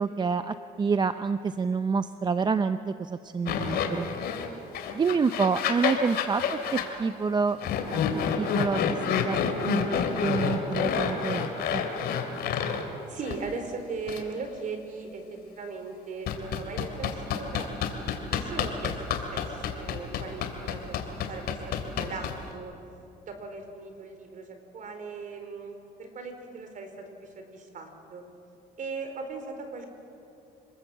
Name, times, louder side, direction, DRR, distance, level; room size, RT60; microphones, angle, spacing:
voice 1, 0.0-4.1 4.9-7.6 8.4-9.9 10.2-11.9, right 5 dB, 25° right, 11 dB, 0.6 m, -28 dB
sound 1, 3.5-4.5 4.7-6.9 7.6-12.8 13.2-13.4 14.1-14.2 16.3-22.5, left 7 dB, 70° left, 3.0 m, -28 dB
voice 2, 6.3-6.6 13.1-17.7 18.3-18.9 19.3-21.0 21.2-22.7 23.3-24.4 24.7-26.9 27.2-28.2 28.8-29.9, right 4 dB, 50° right, 6 dB, 4.4 m, -38 dB
27.5 x 20.5 x 8.1 m, 2.9 s
cardioid pair, 110°, 17 cm